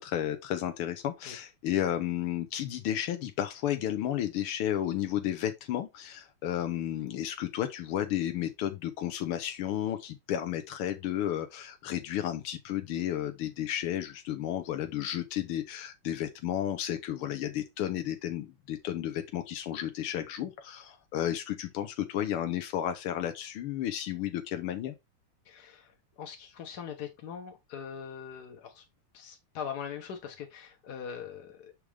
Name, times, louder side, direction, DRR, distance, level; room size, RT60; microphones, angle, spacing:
voice 1, 0.0-25.0, left 11 dB, 90° left, 1.7 m, -32 dB
voice 2, 25.4-28.8 29.1-31.7, left 7 dB, 60° left, 1.2 m, -42 dB
6.2 x 5.1 x 3.3 m
omnidirectional pair, 2.3 m